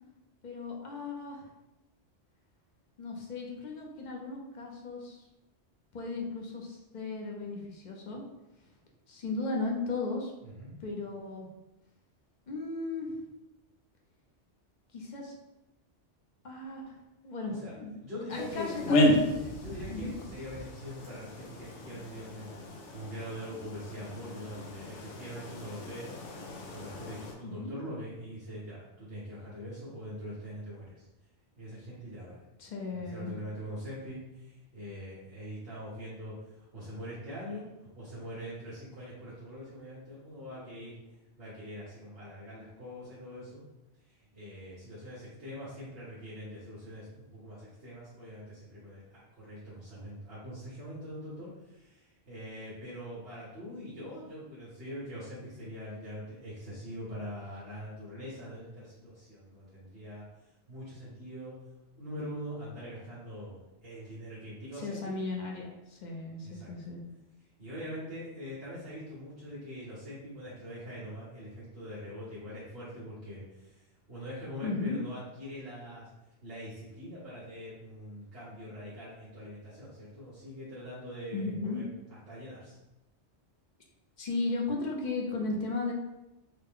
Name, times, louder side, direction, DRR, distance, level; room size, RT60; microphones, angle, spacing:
voice 1, 0.4-1.5 3.0-5.2 5.9-8.2 9.1-10.3 10.8-11.5 12.5-13.2 14.9-15.4 16.4-17.0 17.2-17.9 18.3-19.1 19.9-20.1 27.4-27.7 32.6-33.3 64.8-67.0 74.6-75.0 81.3-81.9 84.2-85.9, left 3 dB, 50° left, 0 dB, 0.7 m, -36 dB
voice 2, 10.4-10.7 17.5-17.7 18.0-18.9 19.4-26.1 26.5-31.1 31.5-32.4 33.0-41.0 41.4-43.6 44.1-60.2 60.7-61.6 61.9-65.1 66.4-66.7 67.6-76.1 76.4-81.9 82.3-82.8, equal, 60° right, -10 dB, 1.3 m, -43 dB
sound 1, 18.3-27.3, left 1 dB, 80° left, 0.9 m, -33 dB
3.8 x 2.1 x 3.6 m, 0.95 s
omnidirectional pair, 1.2 m